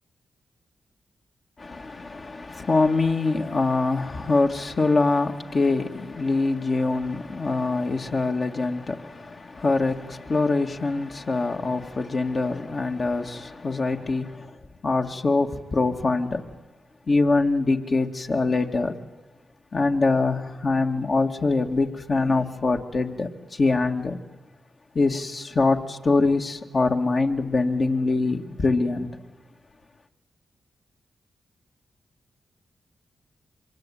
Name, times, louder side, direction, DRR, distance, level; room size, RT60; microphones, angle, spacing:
voice 1, 1.6-14.5 14.8-16.4 17.1-18.9 19.7-24.2 24.9-29.1, left 3 dB, 50° left, 2.3 m, -24 dB
25.5 x 22.5 x 9.3 m
supercardioid pair, 50°, 0 cm